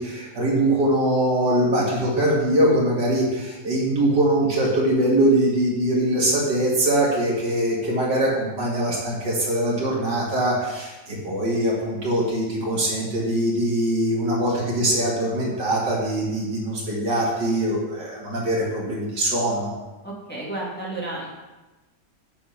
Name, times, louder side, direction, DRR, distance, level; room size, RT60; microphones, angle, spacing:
voice 1, 0.0-19.7, right 1 dB, 70° right, -4 dB, 2.9 m, -22 dB
voice 2, 20.0-21.3, right 2 dB, 5° left, -5 dB, 2.1 m, -32 dB
7.7 x 7.6 x 5.8 m, 1.1 s
omnidirectional pair, 1.9 m